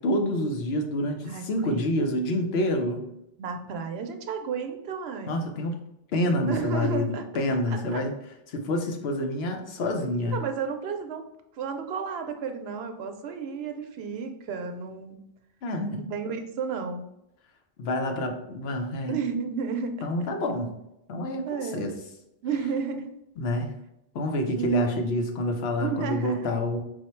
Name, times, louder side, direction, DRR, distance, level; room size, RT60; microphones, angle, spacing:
voice 1, 0.0-3.0 5.3-5.8 6.1-8.1 8.5-10.4 15.6-16.1 17.8-19.2 20.0-20.7 21.1-21.9 23.4-23.7 24.1-26.8, left 1 dB, 80° left, 4 dB, 0.9 m, -27 dB
voice 2, 3.4-5.4 6.5-8.0 9.8-10.0 10.3-11.3 11.5-15.3 16.0-17.1 19.1-20.1 21.5-22.0 22.4-23.1 24.5-25.1 25.8-26.5, right 6 dB, 80° right, 6 dB, 0.8 m, -32 dB
4.5 x 2.1 x 4.3 m, 0.84 s
omnidirectional pair, 1.0 m